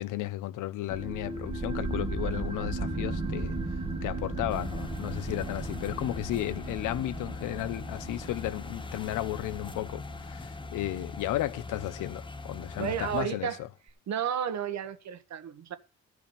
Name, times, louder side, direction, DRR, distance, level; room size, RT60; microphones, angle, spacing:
voice 1, 0.0-3.6 4.0-13.7, left 15 dB, 90° left, 0.8 m, -34 dB
sound 1, 0.9-12.0, right 2 dB, 20° right, 1.7 m, -36 dB
sound 2, 4.5-13.3, left 3 dB, 15° left, 0.9 m, -42 dB
voice 2, 12.8-13.6 14.1-15.8, right 9 dB, 65° right, 1.3 m, -32 dB
14.5 x 4.9 x 6.9 m
cardioid pair, 90°, 30 cm